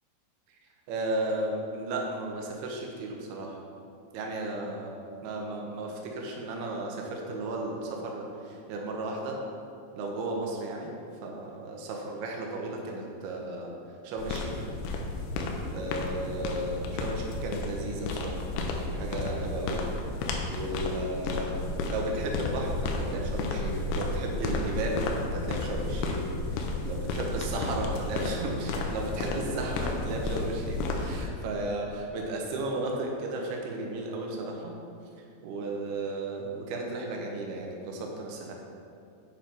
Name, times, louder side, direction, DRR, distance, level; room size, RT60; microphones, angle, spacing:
voice 1, 0.9-3.6 4.1-4.9 5.2-9.4 10.0-10.9 11.2-13.7 14.0-14.7 15.7-18.4 18.7-19.8 20.5-21.6 21.9-26.3 26.8-34.8 35.4-38.5, right 2 dB, 80° right, 0 dB, 2.3 m, -34 dB
sound 1, 14.2-31.3, left 2 dB, 80° left, 3.0 m, -32 dB
9.1 x 4.5 x 5.3 m, 2.5 s
omnidirectional pair, 5.7 m